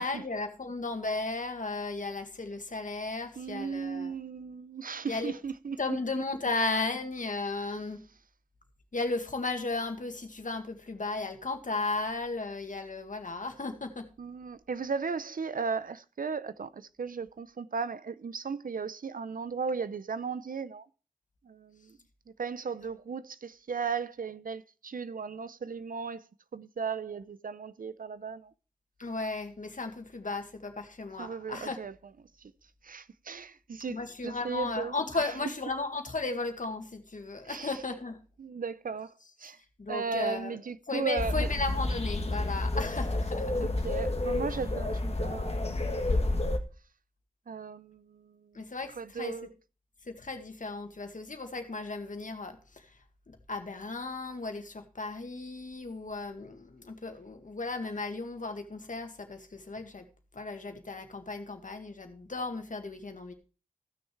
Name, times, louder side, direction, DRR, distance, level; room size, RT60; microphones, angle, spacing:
voice 1, 0.0-4.1 5.1-5.3 5.8-8.0 8.9-14.1 29.0-31.8 33.9-38.2 39.8-40.6 40.9-43.7 48.5-49.3 50.1-52.9 53.3-60.0 60.3-63.3, left 3 dB, 70° left, 2.0 m, -35 dB
voice 2, 3.4-6.0 14.2-20.9 21.4-22.0 22.4-26.2 26.5-28.5 31.2-31.9 32.4-32.5 32.8-34.0 34.2-35.3 37.4-37.8 38.4-39.1 39.4-39.6 39.9-41.5 43.8-45.9 47.5-48.7 49.0-49.5, right 5 dB, 80° right, 0.6 m, -36 dB
sound 1, 41.2-46.6, left 2 dB, 45° left, 1.6 m, -30 dB
15.0 x 6.5 x 4.6 m
wide cardioid pair, 50°, 14 cm